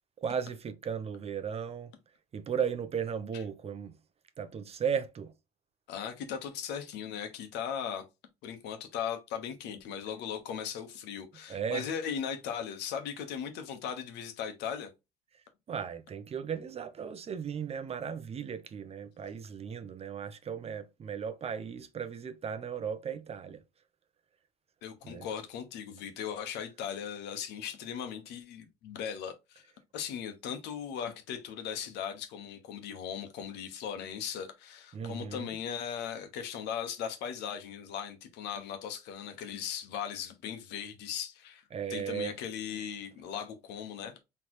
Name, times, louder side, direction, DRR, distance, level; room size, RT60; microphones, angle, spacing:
voice 1, 0.2-1.9 2.3-3.9 4.4-5.3 11.5-11.9 15.7-23.6 25.0-25.3 34.9-35.6 41.7-42.4, right 7 dB, 35° right, 0.7 m, -36 dB
voice 2, 5.9-8.0 8.4-14.9 24.8-29.6 29.9-41.6 41.9-44.1, left 8 dB, 90° left, 1.1 m, -38 dB
4.2 x 3.3 x 3.0 m
cardioid pair, 110°, 17 cm